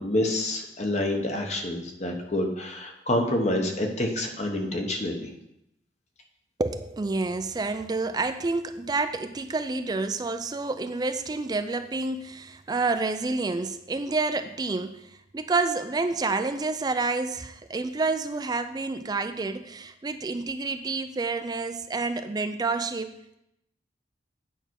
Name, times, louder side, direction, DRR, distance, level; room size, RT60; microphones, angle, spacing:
voice 1, 0.0-5.3, left 1 dB, 40° left, 3 dB, 1.1 m, -27 dB
voice 2, 6.6-23.4, right 3 dB, 20° right, 9 dB, 0.3 m, -29 dB
9.0 x 5.6 x 4.6 m, 0.83 s
head